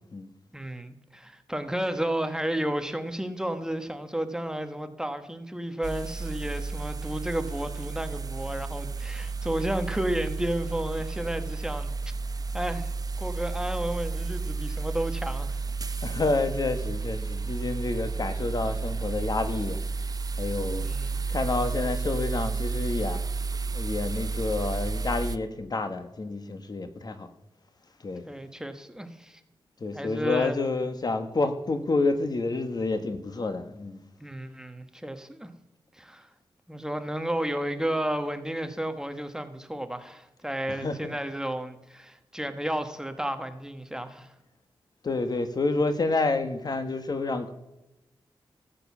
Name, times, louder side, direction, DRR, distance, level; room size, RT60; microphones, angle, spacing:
voice 1, 0.5-11.9 12.5-12.9 13.2-15.6 15.9-16.0 20.8-21.2 28.2-29.4 29.9-30.6 34.2-35.5 35.9-36.3 36.7-44.3, right 1 dB, 5° right, 1.2 m, -32 dB
sound 1, 5.8-25.4, right 4 dB, 40° right, 0.7 m, -32 dB
voice 2, 16.0-19.8 20.4-20.9 21.3-23.2 23.7-27.3 28.0-28.2 29.8-34.0 40.7-41.1 45.0-47.5, left 3 dB, 45° left, 1.4 m, -29 dB
14.0 x 7.7 x 7.3 m
cardioid pair, 80°, 9 cm